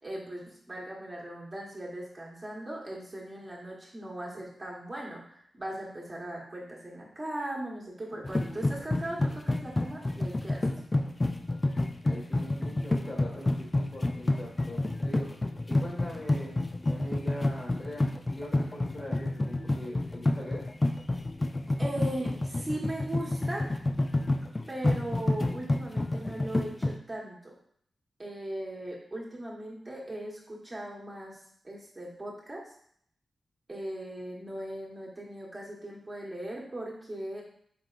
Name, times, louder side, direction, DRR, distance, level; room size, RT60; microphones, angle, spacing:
voice 1, 0.0-10.6 21.8-23.7 24.7-27.5 28.2-32.6 33.7-37.4, right 1 dB, 35° right, -4 dB, 1.3 m, -39 dB
sound 1, 8.2-26.9, left 2 dB, 30° left, 0.4 m, -29 dB
voice 2, 12.0-15.3 15.7-18.1 18.4-20.6, left 1 dB, 50° left, -4 dB, 1.6 m, -42 dB
4.3 x 3.3 x 2.5 m, 0.65 s
cardioid pair, 50°, 0 cm